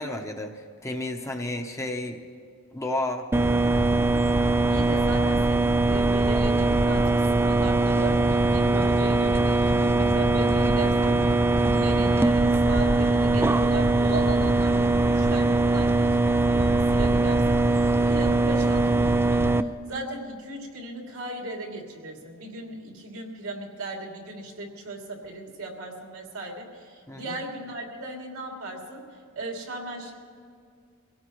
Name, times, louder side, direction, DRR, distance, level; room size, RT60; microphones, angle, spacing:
voice 1, 0.0-2.2 2.7-3.3 27.1-27.3, left 1 dB, 15° left, 3 dB, 0.9 m, -32 dB
sound 1, 3.3-19.6, right 2 dB, 10° right, 0.3 m, -21 dB
voice 2, 4.6-29.0 29.3-30.1, right 2 dB, 90° right, 0 dB, 3.0 m, -37 dB
24.0 x 17.0 x 3.2 m, 2.2 s
head